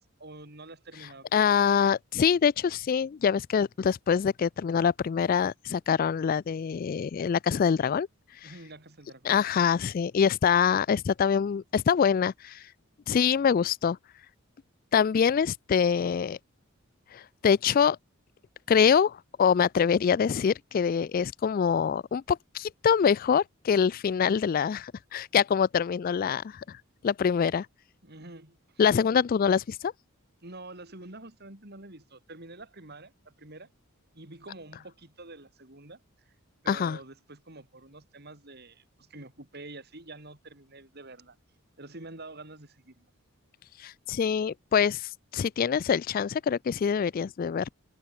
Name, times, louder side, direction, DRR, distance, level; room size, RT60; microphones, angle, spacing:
voice 1, 0.0-1.3 8.4-9.4 28.0-29.2 30.4-33.7 34.1-36.0 36.3-36.4 36.6-41.4 41.8-43.1, right 2 dB, 50° right, 4.3 m, -47 dB
voice 2, 1.3-8.1 8.4-8.5 9.2-12.7 13.1-14.0 14.9-16.4 17.1-18.0 18.7-27.7 28.8-29.9 36.7-37.0 43.8-47.7, left 7 dB, 40° left, 0.3 m, -25 dB
head